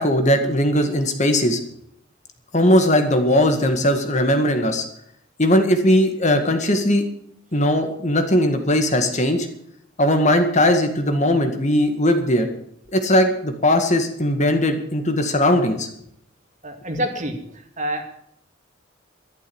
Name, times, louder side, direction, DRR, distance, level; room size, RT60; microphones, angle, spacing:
voice 1, 0.0-1.6 2.5-4.8 5.4-7.1 7.5-9.5 10.0-12.5 12.9-15.9, left 1 dB, 35° left, 6 dB, 1.9 m, -19 dB
voice 2, 16.6-17.4 17.8-18.0, right 1 dB, 35° right, 5 dB, 2.4 m, -26 dB
13.0 x 12.0 x 7.1 m, 0.71 s
head